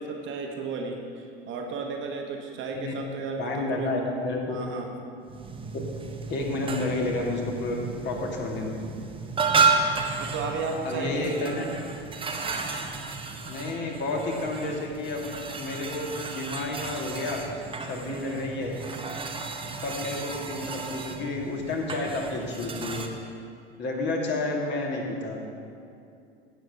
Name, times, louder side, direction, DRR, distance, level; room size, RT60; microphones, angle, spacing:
voice 1, 0.0-3.9 4.5-5.0 10.2-11.7 18.1-18.4, right 4 dB, 40° right, 2 dB, 1.3 m, -34 dB
voice 2, 3.4-4.6 6.3-7.8 8.0-8.8 10.8-11.6 13.5-17.4 17.9-18.7 19.8-23.0 23.8-25.4, left 2 dB, 35° left, -1 dB, 2.1 m, -30 dB
sound 1, 5.2-23.1, right 4 dB, 15° right, 0.9 m, -32 dB
16.5 x 7.7 x 3.6 m, 2.5 s
figure-of-eight pair, 75°, 31 cm